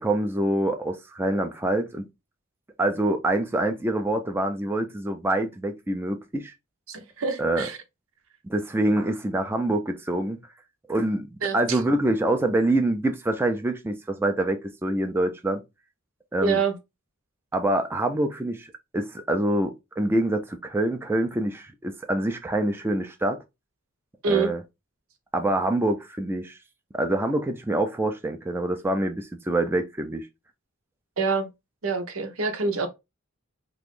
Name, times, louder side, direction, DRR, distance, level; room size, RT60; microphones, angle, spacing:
voice 1, 0.0-2.1 2.8-6.5 7.4-7.7 8.4-10.4 10.9-15.6 16.3-16.6 17.5-23.4 24.3-24.6 25.3-26.6 26.9-30.3, right 1 dB, 10° right, 0.4 m, -25 dB
voice 2, 6.9-7.8 11.4-11.8 16.4-16.7 24.2-24.5 31.2-31.5 31.8-32.9, right 4 dB, 90° right, 0.8 m, -26 dB
3.0 x 2.5 x 3.6 m
head